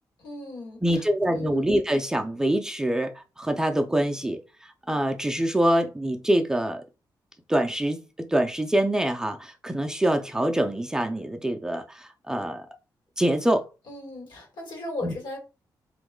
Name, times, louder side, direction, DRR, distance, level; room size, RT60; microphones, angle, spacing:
voice 1, 0.2-1.1 1.3-1.6 13.9-15.4, left 2 dB, 80° left, 2.0 m, -37 dB
voice 2, 0.8-4.4 4.9-6.8 7.5-12.7 13.2-13.7 15.0-15.1, right 1 dB, 10° right, 0.4 m, -25 dB
3.8 x 3.0 x 3.6 m
wide cardioid pair, 170°, 8 cm